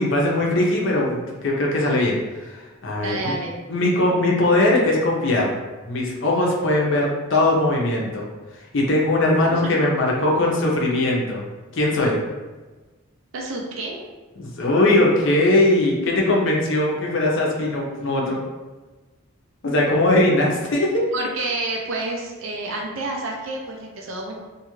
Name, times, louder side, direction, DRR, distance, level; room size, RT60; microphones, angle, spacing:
voice 1, 0.0-3.3 3.7-5.6 5.9-8.2 8.7-11.4 11.7-12.2 14.4-18.4 19.6-21.1, left 1 dB, 60° left, -2 dB, 0.6 m, -20 dB
voice 2, 3.0-3.5 9.5-9.6 13.3-14.0 21.1-24.4, right 2 dB, 70° right, 1 dB, 0.4 m, -29 dB
2.5 x 2.4 x 3.0 m, 1.2 s
head